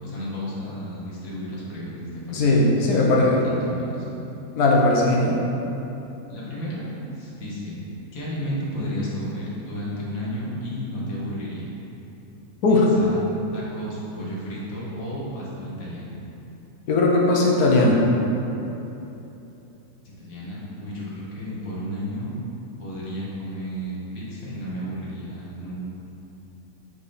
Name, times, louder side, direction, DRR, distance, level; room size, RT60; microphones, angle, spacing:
voice 1, 0.0-2.5 2.7-4.2 6.3-7.8 8.1-11.7 12.7-13.3 13.5-16.1 20.0-22.3 22.8-25.9, equal, 70° left, -6 dB, 1.7 m, -33 dB
voice 2, 2.3-3.4 4.5-5.4 12.6-12.9 16.9-18.0, left 2 dB, 90° left, -3 dB, 1.3 m, -18 dB
4.9 x 4.2 x 4.9 m, 3.0 s
omnidirectional pair, 1.6 m